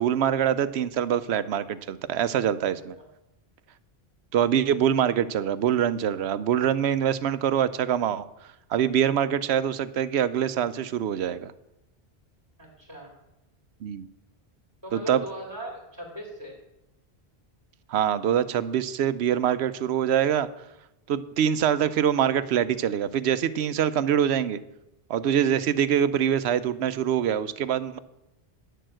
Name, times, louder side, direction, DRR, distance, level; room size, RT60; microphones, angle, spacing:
voice 1, 0.0-3.0 4.3-8.2 8.7-11.5 13.8-14.1 14.9-15.2 17.9-20.5 21.1-24.6 25.1-28.0, right 9 dB, 85° right, 14 dB, 0.9 m, -24 dB
voice 2, 2.6-3.0 12.6-13.1 14.8-16.6, right 1 dB, 15° right, -2 dB, 2.4 m, -39 dB
10.0 x 6.8 x 7.6 m, 0.90 s
omnidirectional pair, 1.1 m